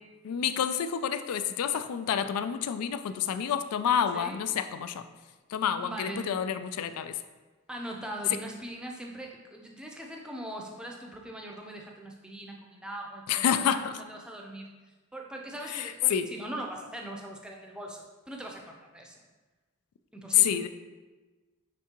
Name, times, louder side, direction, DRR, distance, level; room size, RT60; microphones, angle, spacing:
voice 1, 0.2-5.1 5.5-7.1 13.3-14.0 15.7-16.3 20.3-20.7, left 9 dB, 90° left, 11 dB, 0.3 m, -28 dB
voice 2, 5.8-6.4 7.7-14.7 15.1-19.2 20.1-20.5, right 1 dB, 5° right, 0 dB, 0.5 m, -41 dB
9.2 x 3.6 x 2.9 m, 1.3 s
head